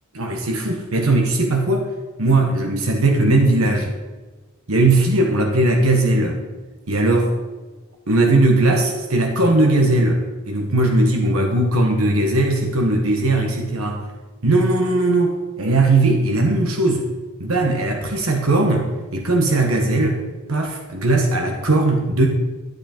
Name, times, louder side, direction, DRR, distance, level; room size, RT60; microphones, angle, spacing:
voice 1, 0.1-1.9 2.2-3.9 4.7-6.4 6.9-7.3 8.1-14.0 14.4-17.1 17.4-20.2 20.5-22.3, right 2 dB, 85° right, 2 dB, 1.3 m, -18 dB
12.0 x 8.1 x 4.4 m, 1.3 s
head